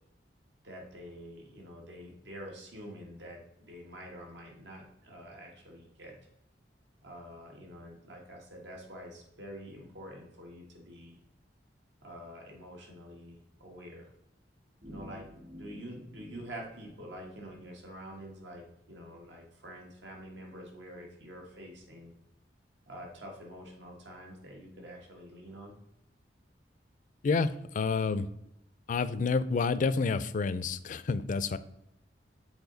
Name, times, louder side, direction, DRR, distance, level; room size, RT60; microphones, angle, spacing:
voice 1, 0.6-3.4 3.7-6.2 7.0-11.2 12.0-14.1 14.8-22.1 22.9-25.8, equal, 85° right, 0 dB, 1.7 m, -47 dB
sound 1, 14.8-17.7, left 1 dB, 50° right, 1.7 m, -51 dB
voice 2, 27.2-28.3 28.9-31.6, left 4 dB, 45° left, 14 dB, 0.4 m, -29 dB
7.0 x 4.4 x 3.9 m, 0.80 s
head